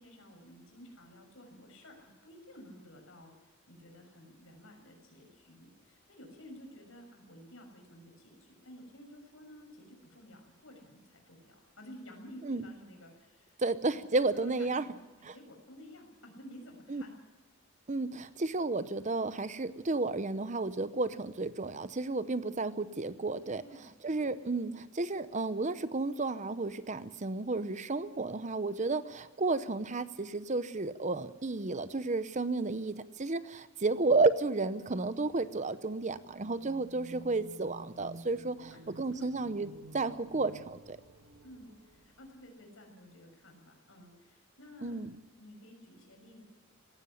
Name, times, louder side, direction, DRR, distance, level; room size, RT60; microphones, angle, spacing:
voice 1, 0.0-13.6 13.9-14.0 14.3-17.1 23.6-23.9 38.7-38.8 39.1-39.3 41.4-45.0 45.4-46.4, equal, 75° left, 3 dB, 6.4 m, -53 dB
voice 2, 13.6-14.9 15.2-15.3 16.9-17.0 17.9-23.6 24.0-38.6 39.0-39.7 39.9-41.0 44.8-45.1, right 3 dB, 35° right, 14 dB, 0.8 m, -32 dB
sound 1, 36.4-42.4, right 1 dB, 80° right, 2.0 m, -52 dB
18.0 x 16.0 x 9.9 m, 1.2 s
head